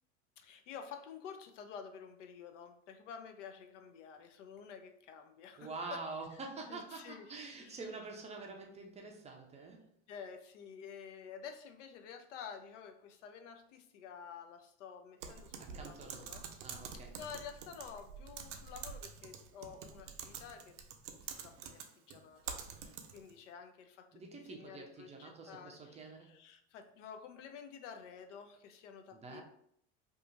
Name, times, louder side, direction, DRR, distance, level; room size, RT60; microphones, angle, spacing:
voice 1, 0.4-6.0 6.7-7.3 7.6-7.8 10.1-16.4 16.9-20.8 21.2-29.4, left 7 dB, 85° left, 7 dB, 0.5 m, -50 dB
voice 2, 5.6-9.9 15.6-16.3 16.6-17.1 24.1-26.4 29.1-29.4, right 3 dB, 20° right, 2 dB, 0.4 m, -46 dB
Typing, 15.2-23.3, right 7 dB, 80° right, 0.5 m, -47 dB
2.8 x 2.4 x 2.5 m, 0.69 s
supercardioid pair, 105°, 36 cm